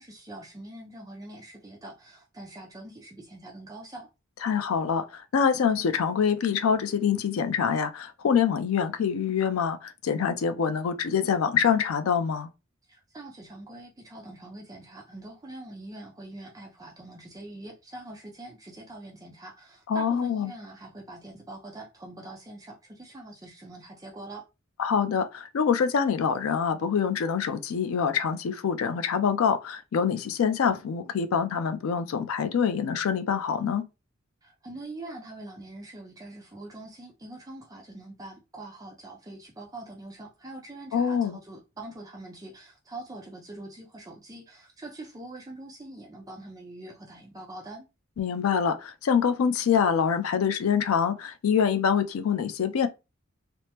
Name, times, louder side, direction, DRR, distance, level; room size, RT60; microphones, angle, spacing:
voice 1, 0.0-4.1 12.9-24.5 34.4-47.9, right 2 dB, 15° right, 0.5 m, -44 dB
voice 2, 4.4-12.5 19.9-20.5 24.8-33.8 40.9-41.4 48.2-52.9, left 7 dB, 85° left, 0.4 m, -25 dB
3.3 x 2.0 x 2.8 m
head